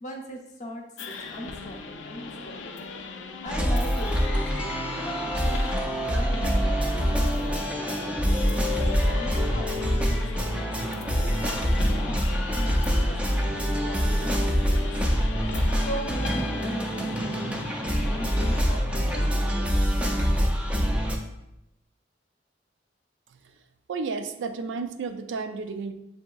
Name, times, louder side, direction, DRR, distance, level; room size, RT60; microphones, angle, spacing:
voice 1, 0.0-3.0 3.4-5.7 6.1-8.5 8.8-12.2 12.5-14.3 14.7-14.9 15.5-20.4, equal, 40° left, 1 dB, 0.7 m, -40 dB
sound 1, 1.0-18.6, left 4 dB, 85° left, 0.5 m, -39 dB
sound 2, 3.5-21.2, equal, 5° right, 0.4 m, -25 dB
voice 2, 23.9-25.9, right 4 dB, 80° right, 7 dB, 0.4 m, -32 dB
7.6 x 2.7 x 2.3 m, 0.89 s
head